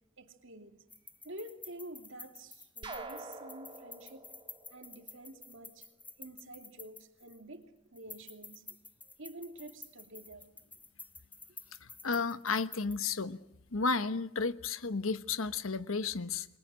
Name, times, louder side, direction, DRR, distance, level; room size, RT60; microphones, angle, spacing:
voice 1, 0.2-0.8 1.2-4.2 4.7-5.9 6.2-8.7 9.0-10.5 12.5-12.6, right 1 dB, 65° right, 2.6 m, -49 dB
sound 1, 0.9-7.5 8.0-13.2, left 3 dB, 10° left, 0.8 m, -51 dB
sound 2, 2.8-5.6, right 2 dB, 25° right, 2.0 m, -46 dB
voice 2, 11.8-13.4 13.7-16.5, left 4 dB, 75° left, 1.2 m, -33 dB
29.0 x 23.0 x 6.3 m
head